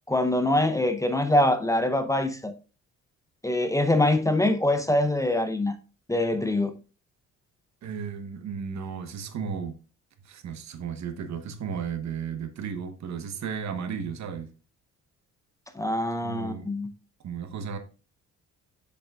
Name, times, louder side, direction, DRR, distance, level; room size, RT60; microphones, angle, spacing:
voice 1, 0.1-2.5 3.4-5.8 6.1-6.8 15.8-16.9, left 1 dB, 10° left, 0.7 m, -24 dB
voice 2, 7.8-9.8 10.2-14.5 16.2-16.7 17.2-17.8, right 6 dB, 65° right, 1.2 m, -34 dB
7.7 x 6.9 x 2.4 m
cardioid pair, 90°, 30 cm